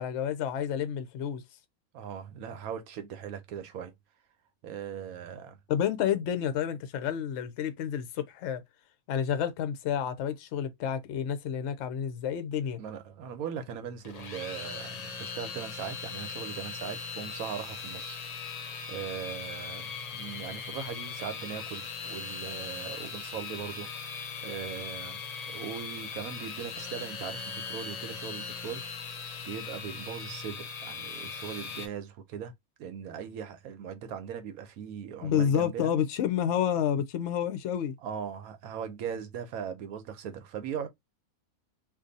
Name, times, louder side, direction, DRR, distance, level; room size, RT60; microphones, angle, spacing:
voice 1, 0.0-1.4 5.7-8.6 9.1-12.8 35.2-37.9, left 9 dB, 65° left, 0.8 m, -29 dB
voice 2, 1.9-3.9 4.6-5.6 12.8-25.2 25.5-28.8 29.4-32.5 32.8-35.9 38.0-40.9, right 8 dB, 85° right, 1.2 m, -39 dB
sound 1, 14.0-31.9, left 5 dB, 80° left, 0.3 m, -39 dB
2.6 x 2.5 x 3.8 m
omnidirectional pair, 1.5 m